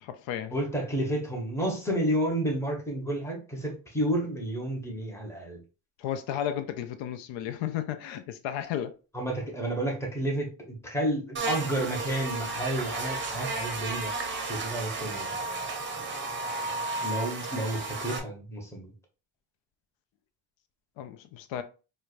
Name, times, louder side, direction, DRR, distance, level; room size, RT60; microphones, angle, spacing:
voice 1, 0.0-0.5 6.0-9.0 21.0-21.6, left 10 dB, 85° left, 0.6 m, -33 dB
voice 2, 0.5-5.6 9.1-14.1 14.5-15.4 17.0-18.9, right 1 dB, 5° left, 0.9 m, -31 dB
Buzz, 11.4-18.2, right 3 dB, 25° right, 0.6 m, -33 dB
4.5 x 2.2 x 2.4 m
cardioid pair, 145°, 43 cm